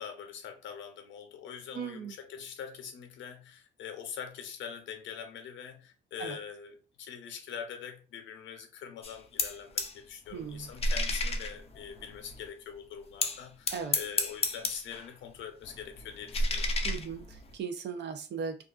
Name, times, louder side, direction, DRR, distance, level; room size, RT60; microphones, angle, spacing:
voice 1, 0.0-16.7, left 7 dB, 75° left, 0.6 m, -43 dB
voice 2, 1.7-2.1 6.2-6.4 10.3-10.7 13.7-14.0 16.8-18.6, right 6 dB, 60° right, 0.5 m, -38 dB
sound 1, 9.0-10.0 10.3-12.5 13.2-15.1 15.4-17.5, left 2 dB, 30° left, 0.4 m, -33 dB
2.4 x 2.3 x 2.4 m
cardioid pair, 90°, 20 cm